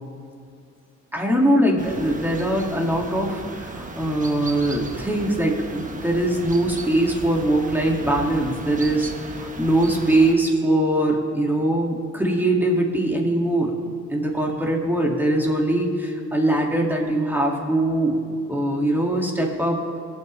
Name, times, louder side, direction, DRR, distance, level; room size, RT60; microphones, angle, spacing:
voice 1, 1.1-9.1 9.6-13.7 14.1-18.2 18.5-19.8, right 1 dB, 5° right, -1 dB, 2.5 m, -22 dB
sound 1, 1.8-10.3, right 3 dB, 25° right, 1.3 m, -36 dB
21.0 x 8.3 x 3.4 m, 2.4 s
cardioid pair, 90°, 30 cm